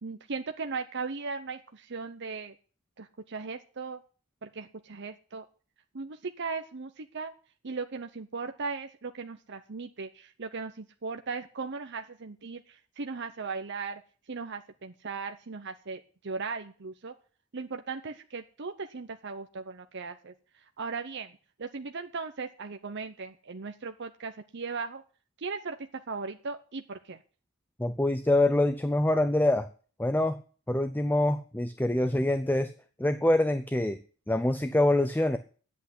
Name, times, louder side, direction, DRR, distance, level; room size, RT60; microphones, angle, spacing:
voice 1, 0.0-2.5 3.0-4.0 4.4-5.4 5.9-7.3 7.6-12.6 13.0-14.0 14.3-17.1 17.5-20.3 20.8-21.3 21.6-25.0 25.4-25.8 26.1-27.2, right 4 dB, 55° right, 6 dB, 0.8 m, -37 dB
voice 2, 27.8-29.7 30.0-30.4 30.7-32.7 33.0-34.0 34.3-35.4, left 1 dB, 10° left, 10 dB, 0.6 m, -25 dB
10.5 x 8.3 x 9.9 m, 0.40 s
head